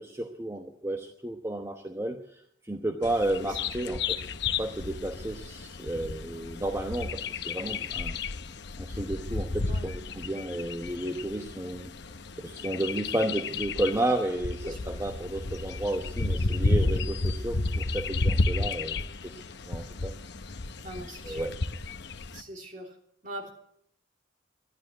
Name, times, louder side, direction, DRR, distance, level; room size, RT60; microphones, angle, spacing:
voice 1, 0.0-4.2 4.6-8.2 8.8-11.9 12.4-20.1 21.0-21.5, right 1 dB, 15° right, 4 dB, 0.9 m, -32 dB
Bird vocalization bird call bird song, 3.0-22.4, left 3 dB, 60° left, 0.8 m, -32 dB
voice 2, 3.3-3.9 4.2-4.3 9.6-9.9 14.6-15.0 20.8-21.5 22.3-22.9 23.2-23.5, right 1 dB, 40° right, 2 dB, 3.2 m, -42 dB
12.0 x 12.0 x 9.3 m, 0.68 s
head